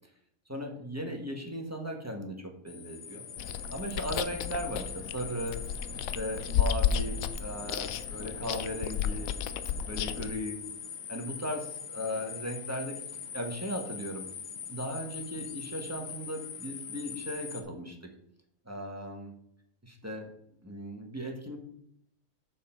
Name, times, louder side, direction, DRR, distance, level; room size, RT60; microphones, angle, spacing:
voice 1, 0.5-3.2 3.7-5.6 5.9-9.3 9.9-10.6 11.1-13.0 13.3-14.3 14.7-18.0 18.6-19.3 19.8-20.3 20.6-21.6, equal, 10° right, 1 dB, 1.3 m, -37 dB
sound 1, 2.7-17.6, left 7 dB, 55° left, 1.0 m, -42 dB
Chewing mastication, 3.4-10.3, left 8 dB, 80° left, 1.0 m, -33 dB
7.3 x 6.6 x 4.4 m, 0.72 s
omnidirectional pair, 1.5 m